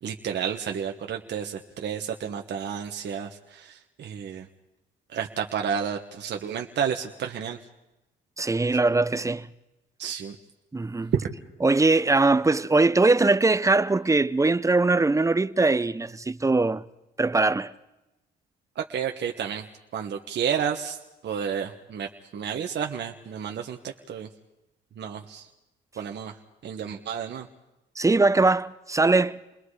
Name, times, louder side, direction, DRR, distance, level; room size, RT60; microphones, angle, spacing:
voice 1, 0.0-4.5 5.1-7.6 10.0-10.4 11.2-11.3 18.7-19.6 19.9-21.0 21.2-24.3 25.0-25.5 26.0-26.4 26.6-27.5, right 7 dB, 60° right, 1.4 m, -31 dB
voice 2, 8.4-9.5 10.7-11.1 11.6-16.8 17.2-17.7 28.0-29.4, right 3 dB, 15° right, 0.8 m, -21 dB
29.5 x 21.5 x 5.0 m
cardioid pair, 90°, 20 cm